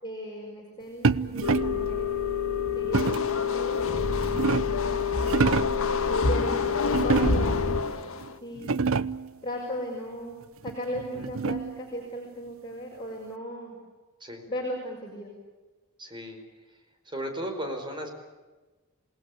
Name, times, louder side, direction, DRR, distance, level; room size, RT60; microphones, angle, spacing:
voice 1, 0.0-2.1 2.7-5.4 6.3-8.1 8.4-8.7 9.4-10.4 10.6-13.8 14.5-15.3, equal, 20° left, -3 dB, 5.5 m, -37 dB
sound 1, 1.0-1.9 2.9-3.4 4.0-4.8 5.2-5.9 6.9-7.6 8.2-8.3 8.6-9.3 10.7-11.8, right 4 dB, 65° right, 0.7 m, -27 dB
sound 2, 1.4-7.8, left 6 dB, 90° left, 2.1 m, -28 dB
sound 3, 2.9-8.4, left 3 dB, 65° left, 1.6 m, -32 dB
voice 2, 16.0-16.4 16.7-16.8 17.0-18.1, equal, 20° right, 4 dB, 4.9 m, -35 dB
28.0 x 19.5 x 8.5 m, 1.2 s
head